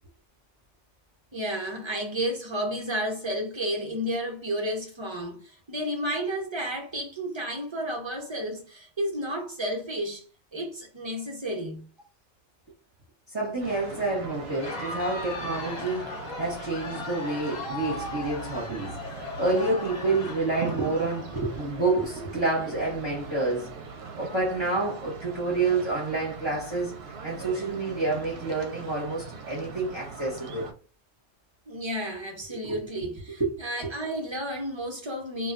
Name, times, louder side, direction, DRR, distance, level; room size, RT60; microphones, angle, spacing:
voice 1, 1.3-10.2 10.5-11.8 31.7-35.5, equal, 45° right, 0.3 m, -32 dB
voice 2, 13.3-19.0 19.4-23.7 24.2-30.7 32.6-32.7 33.3-33.9, right 3 dB, 30° right, 0.7 m, -28 dB
sound 1, 13.6-30.7, right 5 dB, 65° right, 0.7 m, -41 dB
Crowd, 14.4-22.0, left 3 dB, 40° left, 0.8 m, -38 dB
2.2 x 2.2 x 3.7 m
omnidirectional pair, 1.2 m